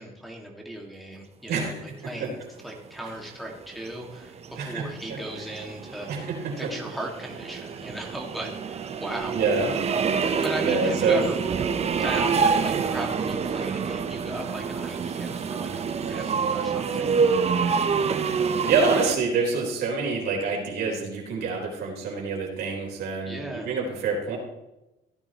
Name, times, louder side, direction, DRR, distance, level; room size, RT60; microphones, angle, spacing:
voice 1, 0.0-2.4 2.6-6.3 6.6-9.4 10.4-11.3 12.0-17.2 23.2-23.7, right 1 dB, ahead, -1 dB, 2.1 m, -36 dB
sound 1, 3.3-19.2, right 5 dB, 40° right, 0.9 m, -27 dB
voice 2, 4.6-5.2 6.1-6.7 9.3-9.7 10.6-11.2 18.3-24.4, right 4 dB, 70° right, -1 dB, 4.1 m, -26 dB
16.0 x 9.7 x 3.1 m, 0.96 s
cardioid pair, 110°, 17 cm